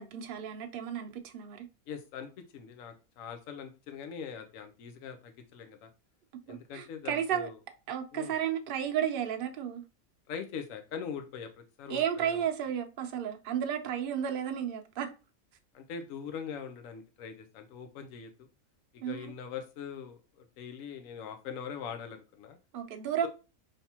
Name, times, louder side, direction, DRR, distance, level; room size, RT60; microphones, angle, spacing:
voice 1, 0.0-1.7 6.5-7.5 7.9-9.8 11.9-15.1 19.0-19.3 22.7-23.3, right 9 dB, 50° right, 0.8 m, -33 dB
voice 2, 1.9-5.9 6.5-7.5 8.1-8.3 10.3-12.5 15.7-18.5 19.1-22.6, left 7 dB, 80° left, 1.0 m, -42 dB
5.7 x 3.3 x 2.8 m
omnidirectional pair, 1.4 m